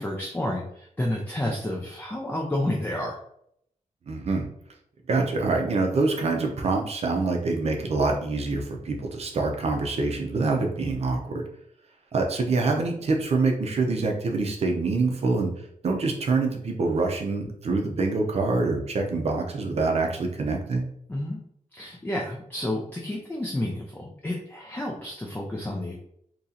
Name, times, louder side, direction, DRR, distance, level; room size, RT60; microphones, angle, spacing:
voice 1, 0.0-3.2 21.1-21.4 21.7-26.0, left 1 dB, 15° left, -1 dB, 0.5 m, -30 dB
voice 2, 4.1-4.5 5.1-11.4 12.1-15.5 15.8-20.9, right 3 dB, 55° right, 2 dB, 0.7 m, -25 dB
3.0 x 2.8 x 3.8 m, 0.70 s
wide cardioid pair, 170°, 13 cm